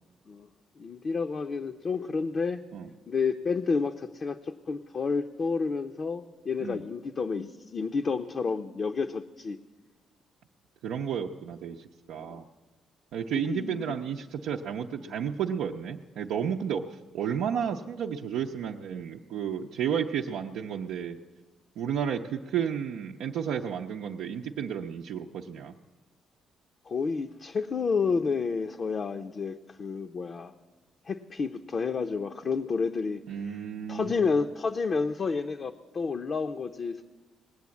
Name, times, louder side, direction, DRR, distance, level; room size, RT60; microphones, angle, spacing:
voice 1, 0.8-2.6 3.1-9.6 12.2-12.4 13.3-14.0 15.0-15.1 26.9-30.5 31.1-33.6 33.9-37.0, left 5 dB, 45° left, 4 dB, 0.6 m, -30 dB
voice 2, 10.8-11.8 12.1-12.4 13.1-16.8 17.1-21.2 21.8-25.7 33.3-34.3, right 8 dB, 85° right, -1 dB, 0.6 m, -32 dB
19.0 x 7.8 x 8.3 m, 1.2 s
cardioid pair, 90°, 0 cm